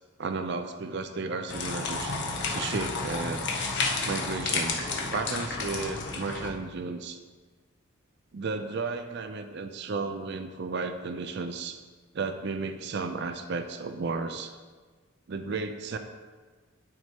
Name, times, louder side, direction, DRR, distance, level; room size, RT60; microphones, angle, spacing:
voice 1, 0.2-2.1 2.4-3.4 4.0-7.2 8.3-11.8 12.1-14.5 15.3-16.0, right 4 dB, 50° right, 8 dB, 0.4 m, -33 dB
sound 1, 1.5-6.5, left 3 dB, 55° left, 1.0 m, -31 dB
12.0 x 4.7 x 2.9 m, 1.4 s
head